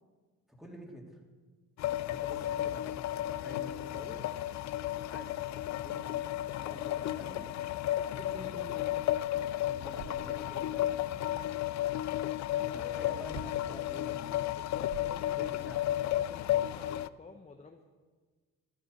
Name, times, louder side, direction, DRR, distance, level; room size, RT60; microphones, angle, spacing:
voice 1, 0.5-1.2 2.1-4.2 5.0-5.3 5.6-7.5 8.1-9.1 9.6-11.5 12.5-14.7 15.4-15.9, equal, ahead, 0 dB, 3.2 m, -48 dB
sound 1, 1.8-17.1, left 13 dB, 65° left, 0.5 m, -33 dB
sound 2, 9.2-10.7 13.2-13.7 14.5-15.7, right 6 dB, 50° right, 1.1 m, -48 dB
voice 2, 12.8-13.2 14.5-15.7 16.1-17.8, left 4 dB, 20° left, 4 dB, 1.0 m, -50 dB
13.5 x 10.5 x 6.7 m, 1.4 s
cardioid pair, 90°, 30 cm